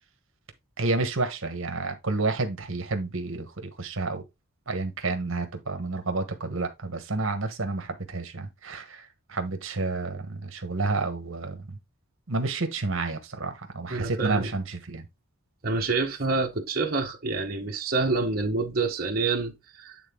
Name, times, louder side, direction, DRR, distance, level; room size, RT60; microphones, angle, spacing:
voice 1, 0.8-4.2 4.7-11.8 12.3-15.0, right 3 dB, 65° right, 1.3 m, -30 dB
voice 2, 13.9-14.5 15.6-20.0, right 3 dB, 45° right, 1.2 m, -27 dB
9.1 x 3.9 x 3.7 m
head